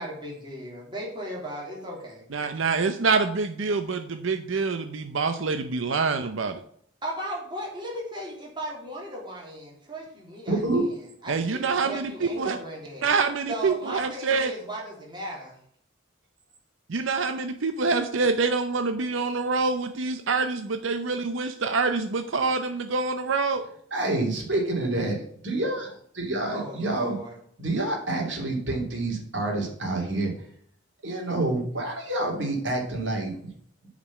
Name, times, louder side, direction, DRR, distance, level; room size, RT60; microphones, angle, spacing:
voice 1, 0.0-2.2 7.0-13.1 13.5-15.6 26.4-27.4, right 1 dB, 25° right, -3 dB, 3.1 m, -37 dB
voice 2, 2.3-6.6 11.3-12.6 13.0-14.5 16.9-23.6, right 4 dB, 80° right, 8 dB, 0.7 m, -26 dB
voice 3, 10.5-10.8 23.9-25.2 25.4-27.2 27.6-30.3 31.0-33.3, right 2 dB, 65° right, 0 dB, 3.1 m, -27 dB
8.3 x 5.2 x 7.2 m, 0.63 s
head